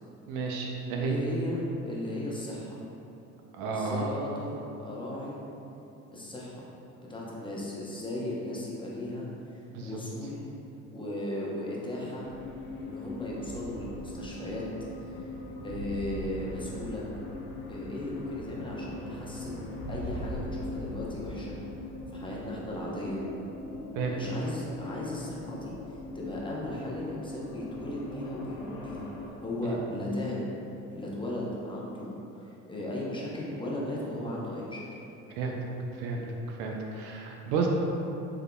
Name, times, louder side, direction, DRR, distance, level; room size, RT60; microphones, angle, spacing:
voice 1, 0.3-1.2 3.5-4.1 9.7-10.0 23.9-24.2 29.6-29.7 35.3-35.5 36.0-36.2 36.5-37.7, right 5 dB, 75° right, 0 dB, 0.6 m, -32 dB
voice 2, 1.1-2.8 3.7-5.4 6.1-6.7 7.0-10.5 10.9-12.3 12.8-14.6 15.0-15.2 15.6-17.0 17.7-19.6 19.9-21.5 22.1-23.2 24.1-25.7 26.1-29.1 29.4-30.5 30.9-34.9, left 1 dB, 15° left, -5 dB, 0.7 m, -36 dB
sound 1, 12.2-29.3, left 2 dB, 65° left, 0.6 m, -40 dB
3.6 x 3.4 x 2.2 m, 2.9 s
hypercardioid pair, 75°, 36 cm